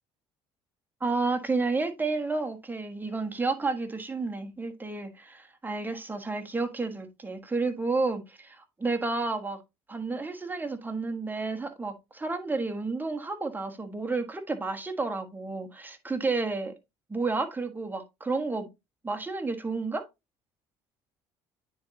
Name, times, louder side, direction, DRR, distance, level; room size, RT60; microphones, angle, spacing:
voice 1, 1.0-9.6 9.9-16.7 17.1-18.7 19.0-20.0, right 3 dB, 15° right, 1.3 m, -31 dB
9.3 x 4.0 x 2.7 m
supercardioid pair, 75°, 12 cm